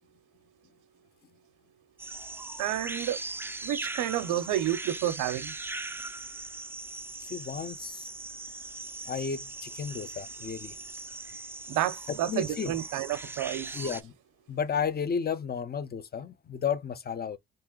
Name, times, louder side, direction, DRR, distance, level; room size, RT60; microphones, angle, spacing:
sound 1, 2.0-14.0, right 3 dB, 10° right, 0.4 m, -40 dB
voice 1, 2.6-3.2 3.6-5.5 11.7-13.8, right 12 dB, 85° right, 0.6 m, -30 dB
voice 2, 7.2-8.1 9.1-10.7 12.3-12.8 13.7-14.1 14.5-17.4, left 6 dB, 30° left, 0.6 m, -33 dB
2.9 x 2.9 x 3.6 m
cardioid pair, 90°, 30 cm